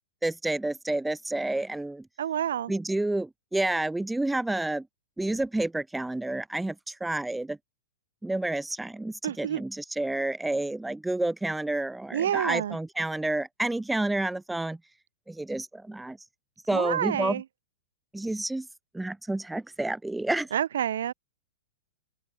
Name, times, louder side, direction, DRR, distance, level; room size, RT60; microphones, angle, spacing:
voice 1, 0.2-2.0 2.7-4.8 5.2-7.6 8.2-14.8 15.3-16.2 16.7-17.4 18.1-18.7 18.9-20.5, right 2 dB, 5° right, 0.3 m, -29 dB
voice 2, 2.2-2.7 9.2-9.6 12.1-12.8 16.7-17.4 20.5-21.1, right 10 dB, 80° right, 2.3 m, -28 dB
hypercardioid pair, 150°, 0 cm